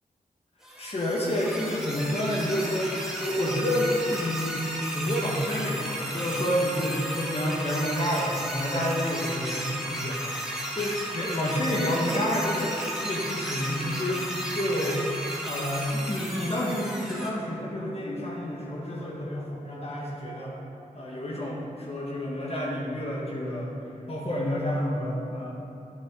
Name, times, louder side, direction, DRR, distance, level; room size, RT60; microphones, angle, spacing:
sound 1, 0.6-17.3, right 1 dB, 5° right, 1.6 m, -34 dB
voice 1, 0.8-2.9 3.2-4.6 4.9-15.0 15.4-20.5 20.9-23.7 24.1-25.5, equal, 45° left, -4 dB, 1.5 m, -29 dB
9.3 x 6.2 x 3.8 m, 2.9 s
cardioid pair, 65°, 15 cm